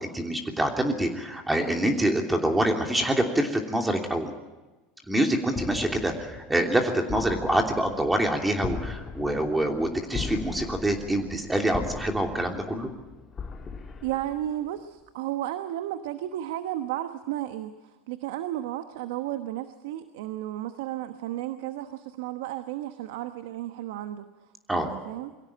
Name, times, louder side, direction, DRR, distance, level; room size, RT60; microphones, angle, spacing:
voice 1, 0.0-4.3 5.1-12.9 24.7-24.9, right 1 dB, 10° right, 3 dB, 3.1 m, -26 dB
sound 1, 5.5-14.8, left 5 dB, 25° left, 2.5 m, -39 dB
voice 2, 14.0-24.3 24.7-25.3, right 13 dB, 75° right, 9 dB, 1.1 m, -33 dB
23.5 x 16.5 x 8.7 m, 1.2 s
supercardioid pair, 100°, 0 cm